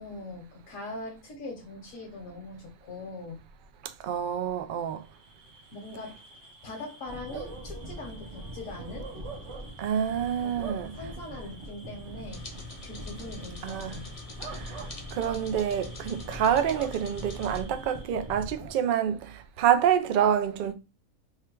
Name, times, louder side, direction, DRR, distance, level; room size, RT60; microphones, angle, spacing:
voice 1, 0.0-3.4 5.7-6.2 6.6-9.1 10.4-10.5 10.9-12.4 12.8-14.2, left 2 dB, 75° left, 1.3 m, -41 dB
voice 2, 4.0-5.0 9.8-10.9 13.6-13.9 14.5-14.8 15.1-20.7, right 9 dB, 85° right, 0.4 m, -27 dB
Bark / Cricket, 5.1-18.4, right 4 dB, 60° right, 1.3 m, -48 dB
sound 1, 7.1-18.7, right 1 dB, 30° right, 0.5 m, -43 dB
sound 2, 12.3-17.6, left 3 dB, 35° left, 0.6 m, -43 dB
3.6 x 2.2 x 4.4 m
omnidirectional pair, 1.4 m